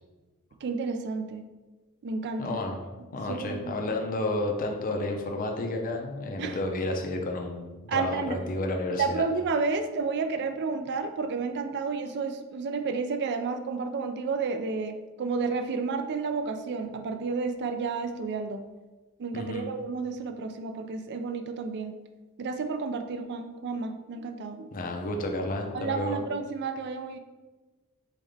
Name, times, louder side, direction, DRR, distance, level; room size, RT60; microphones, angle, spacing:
voice 1, 0.6-1.4 2.0-2.6 3.3-3.7 6.4-6.6 7.9-8.4 9.0-18.6 19.2-21.9 22.4-24.7 25.7-27.2, right 4 dB, 50° right, 7 dB, 0.4 m, -31 dB
voice 2, 2.4-2.8 3.1-9.2 19.3-19.7 24.7-26.2, left 2 dB, 40° left, 2 dB, 0.6 m, -31 dB
4.1 x 3.7 x 3.4 m, 1.2 s
head